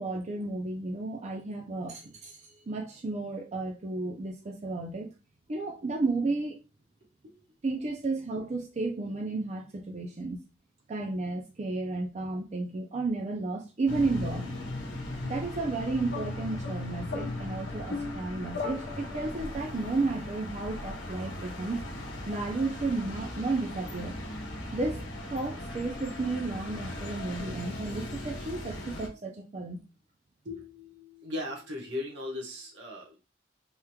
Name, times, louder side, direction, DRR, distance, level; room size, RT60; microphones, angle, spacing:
voice 1, 0.0-5.1 5.5-6.6 7.6-10.4 10.9-14.5 15.2-21.8 22.3-24.1 24.7-29.8, right 3 dB, 35° right, 1 dB, 0.5 m, -33 dB
sound 1, 13.9-29.1, left 1 dB, 90° left, 0.9 m, -38 dB
sound 2, 16.1-19.5, left 4 dB, 60° left, 0.5 m, -39 dB
voice 2, 30.4-33.2, left 2 dB, 80° right, 0 dB, 1.2 m, -38 dB
3.5 x 3.0 x 2.3 m, 0.29 s
head